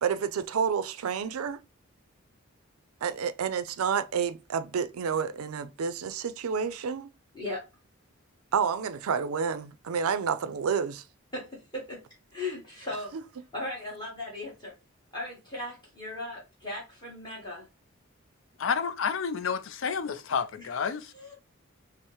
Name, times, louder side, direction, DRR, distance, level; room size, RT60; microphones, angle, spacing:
voice 1, 0.0-1.6 3.0-7.1 8.5-11.0 13.1-13.2, right 6 dB, 90° right, 0.4 m, -29 dB
voice 2, 12.3-13.1 13.5-14.7 15.1-17.7 20.6-20.7 21.1-21.3, left 2 dB, 20° left, 1.4 m, -37 dB
voice 3, 18.6-21.1, left 6 dB, 65° left, 0.4 m, -30 dB
5.4 x 2.0 x 3.0 m
head